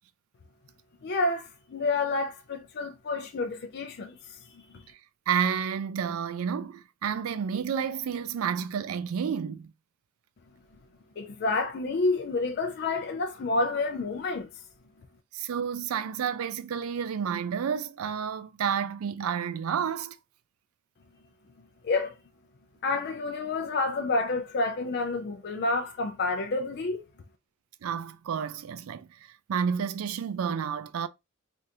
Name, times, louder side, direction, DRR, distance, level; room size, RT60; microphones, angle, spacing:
voice 1, 1.0-4.2 11.2-14.5 21.8-22.1 22.8-27.0, left 3 dB, 50° left, 0.4 m, -29 dB
voice 2, 5.3-9.7 15.3-20.2 27.8-31.1, right 7 dB, 90° right, 0.4 m, -30 dB
3.4 x 2.5 x 2.7 m
head